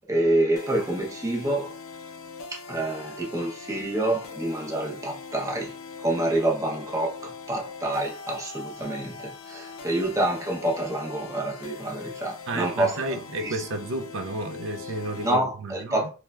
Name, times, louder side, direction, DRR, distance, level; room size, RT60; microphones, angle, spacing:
voice 1, 0.1-1.8 2.5-5.7 6.0-13.0 13.4-13.5 15.2-16.1, right 1 dB, 15° right, 0.6 m, -27 dB
sound 1, 0.6-15.4, left 4 dB, 65° left, 0.4 m, -41 dB
voice 2, 12.5-16.1, right 2 dB, 60° right, 0.4 m, -32 dB
3.1 x 2.2 x 2.2 m
head